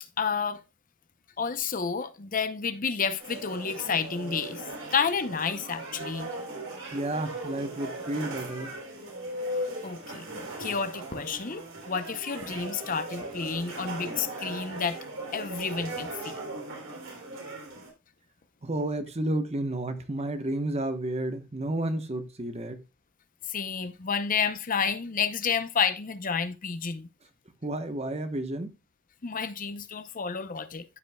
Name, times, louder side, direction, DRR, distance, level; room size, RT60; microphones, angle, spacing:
voice 1, 0.2-0.6 1.4-4.6 4.9-6.3 9.5-10.3 10.6-15.0 15.3-16.4 23.5-27.1 29.2-30.8, left 6 dB, 40° left, 0.7 m, -30 dB
sound 1, 3.2-17.9, right 1 dB, 70° right, 3.4 m, -38 dB
voice 2, 6.9-8.8 18.6-22.8 27.6-28.7, right 1 dB, 30° right, 1.0 m, -31 dB
13.5 x 5.5 x 2.3 m
head